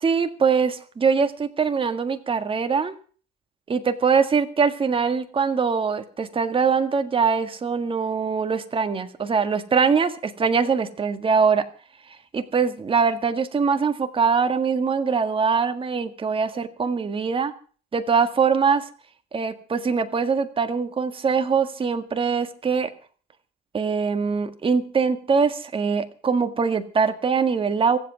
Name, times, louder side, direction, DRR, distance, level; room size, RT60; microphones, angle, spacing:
voice 1, 0.0-2.9 3.7-11.7 12.3-17.5 17.9-18.9 19.3-22.9 23.7-28.0, right 5 dB, 25° right, 8 dB, 1.8 m, -22 dB
24.0 x 8.1 x 6.1 m, 0.42 s
hypercardioid pair, 80°, 21 cm